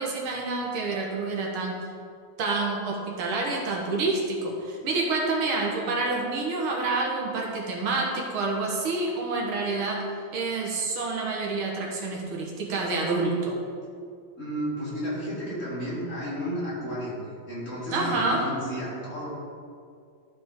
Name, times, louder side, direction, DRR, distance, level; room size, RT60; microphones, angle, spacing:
voice 1, 0.0-1.8 2.4-10.1 10.3-13.6 17.9-18.4, right 3 dB, 80° right, -1 dB, 2.2 m, -28 dB
voice 2, 14.4-17.2 17.5-19.3, equal, 35° left, -8 dB, 2.8 m, -32 dB
13.0 x 5.0 x 3.8 m, 2.3 s
omnidirectional pair, 2.3 m